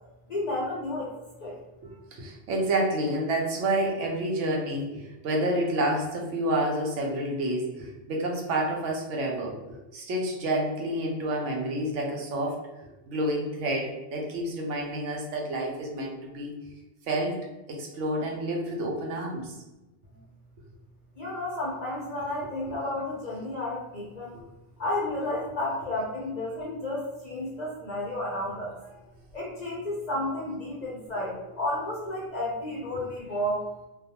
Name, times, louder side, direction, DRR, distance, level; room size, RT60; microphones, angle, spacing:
voice 1, 0.3-1.1 1.4-1.6 21.2-24.4 24.8-28.8 29.3-33.7, left 1 dB, 55° left, -5 dB, 0.5 m, -32 dB
voice 2, 1.8-9.6 9.9-12.6 13.1-16.5 17.1-17.4 17.7-19.6 24.3-24.4, right 1 dB, 80° right, 0 dB, 0.9 m, -29 dB
2.3 x 2.3 x 2.7 m, 1.0 s
omnidirectional pair, 1.2 m